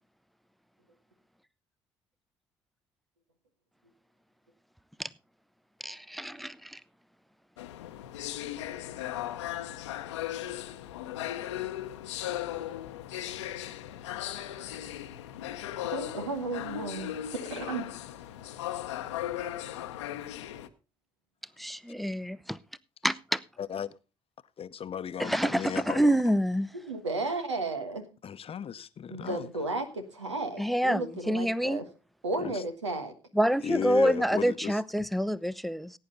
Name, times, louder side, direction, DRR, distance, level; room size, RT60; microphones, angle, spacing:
voice 1, 5.8-6.8 21.6-22.6 23.0-23.4 25.2-26.7 30.6-31.8 33.4-35.9, equal, ahead, 0.6 m, -27 dB
sound 1, 7.6-20.7, left 12 dB, 80° left, 0.8 m, -37 dB
voice 2, 15.9-17.1 17.4-17.9 26.9-28.0 29.1-31.9 32.2-33.1, right 2 dB, 90° right, 1.3 m, -33 dB
voice 3, 23.6-23.9 24.6-26.1 28.2-29.5 32.4-32.6 33.6-34.8, left 8 dB, 40° left, 0.7 m, -35 dB
16.5 x 9.2 x 3.8 m
figure-of-eight pair, 50°, 15 cm